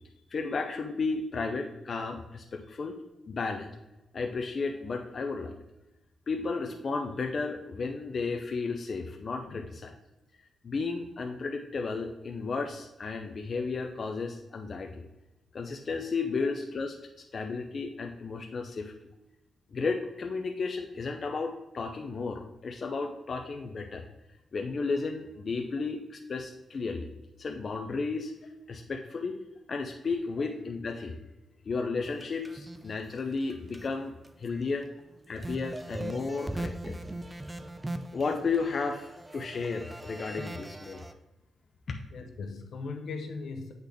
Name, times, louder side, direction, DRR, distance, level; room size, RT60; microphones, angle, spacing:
voice 1, 0.3-3.0 3.3-3.7 4.1-5.6 6.3-9.9 10.6-15.1 15.5-18.9 19.7-24.1 24.5-27.1 27.4-28.3 28.7-29.4 29.7-31.2 31.6-34.9 35.3-37.0 38.1-41.1 41.9-42.0, left 4 dB, 40° left, 3 dB, 0.5 m, -33 dB
sound 1, 32.0-33.9 34.2-34.6 35.0-41.1, right 1 dB, 15° right, 0.4 m, -40 dB
voice 2, 42.1-43.7, left 4 dB, 70° left, 5 dB, 0.8 m, -39 dB
8.2 x 4.0 x 3.4 m, 0.94 s
wide cardioid pair, 140°, 0 cm